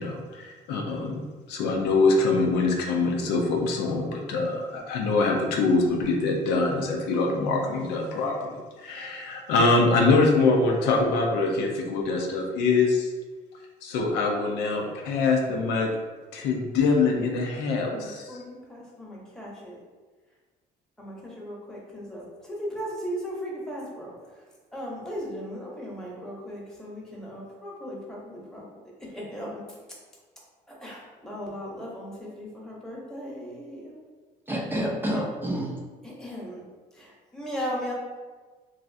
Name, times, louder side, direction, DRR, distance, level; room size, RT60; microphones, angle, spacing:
voice 1, 0.0-13.1 13.8-15.9 16.3-18.2, left 3 dB, 90° left, 1 dB, 0.5 m, -24 dB
voice 2, 17.9-19.8 21.0-24.4 24.7-28.6 29.0-29.6 30.7-34.0 36.0-36.6 36.9-37.9, equal, 5° left, -5 dB, 0.9 m, -37 dB
voice 3, 34.5-35.8, equal, 10° right, -3 dB, 0.4 m, -28 dB
3.1 x 2.5 x 2.5 m, 1.3 s
cardioid pair, 110°, 17 cm